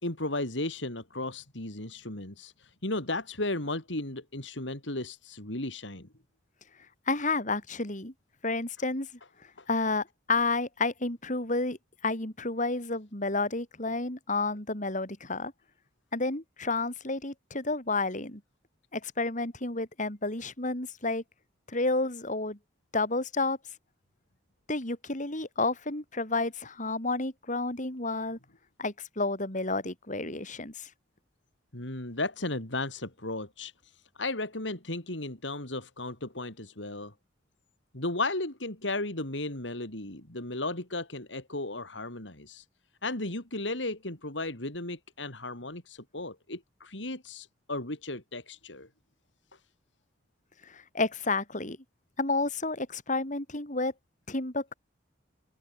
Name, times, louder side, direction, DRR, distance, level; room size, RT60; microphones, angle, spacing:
voice 1, 0.0-6.1 9.6-9.7 31.7-37.1 37.9-42.7 43.0-48.9, left 2 dB, 85° left, 5.1 m, -35 dB
voice 2, 7.1-8.1 8.4-9.1 9.7-11.8 12.0-15.5 16.1-18.4 18.9-21.2 21.7-22.6 22.9-23.6 24.7-28.4 28.8-30.9 50.6-51.8 52.2-53.9 54.3-54.7, left 3 dB, 45° left, 5.7 m, -30 dB
open air
head